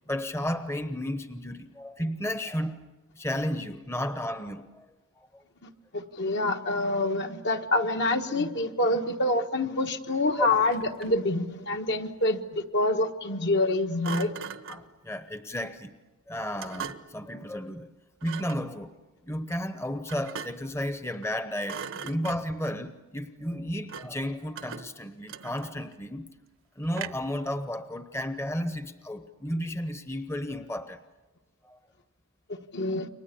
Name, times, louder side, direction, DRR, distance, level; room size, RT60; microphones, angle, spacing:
voice 1, 0.1-2.8 3.2-4.9 5.2-5.4 10.4-10.5 14.7-16.0 16.3-17.9 18.2-18.9 19.2-26.3 26.8-31.0 31.6-31.8, equal, 10° left, 10 dB, 0.9 m, -33 dB
voice 2, 5.6-14.3 32.5-33.1, left 2 dB, 55° left, 4 dB, 1.5 m, -27 dB
Thump thud, 10.5-11.3 14.0-14.9 16.6-17.2 18.2-18.7 20.1-20.8 21.1-21.4 21.6-22.7 23.9-24.2 24.6-25.9 26.9-27.4, right 6 dB, 65° right, 1.0 m, -40 dB
29.5 x 23.5 x 8.5 m, 1.2 s
head